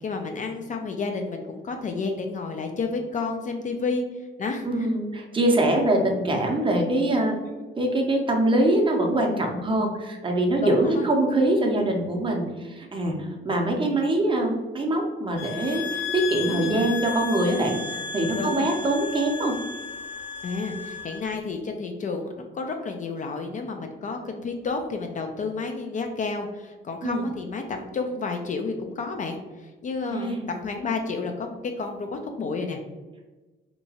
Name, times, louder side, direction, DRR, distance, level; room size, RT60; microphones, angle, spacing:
voice 1, 0.0-4.0 4.4-4.9 7.5-7.6 10.6-11.1 16.5-16.8 18.3-18.7 20.4-32.8, left 4 dB, 40° left, 4 dB, 0.4 m, -31 dB
voice 2, 4.6-7.4 7.8-19.6 27.0-27.3 30.1-30.5, right 1 dB, 25° right, 1 dB, 0.6 m, -24 dB
sound 1, 15.4-21.2, left 6 dB, 60° left, 0.7 m, -34 dB
2.9 x 2.2 x 2.7 m, 1.2 s
cardioid pair, 90°, 20 cm